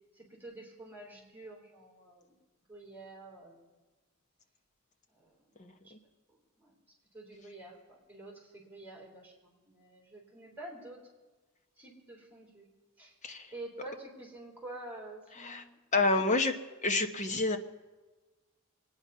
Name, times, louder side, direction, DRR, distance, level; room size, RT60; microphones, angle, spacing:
voice 1, 0.1-2.3 2.7-3.7 5.1-5.6 5.8-5.9 6.3-6.8 7.1-11.0 11.8-12.7 13.0-13.2 13.5-15.8, right 2 dB, 10° right, -2 dB, 3.6 m, -48 dB
voice 2, 5.6-6.0 13.2-13.5 15.4-15.6 15.9-16.5 16.8-17.6, left 3 dB, 35° left, 6 dB, 0.9 m, -29 dB
25.0 x 9.8 x 5.5 m, 1.3 s
head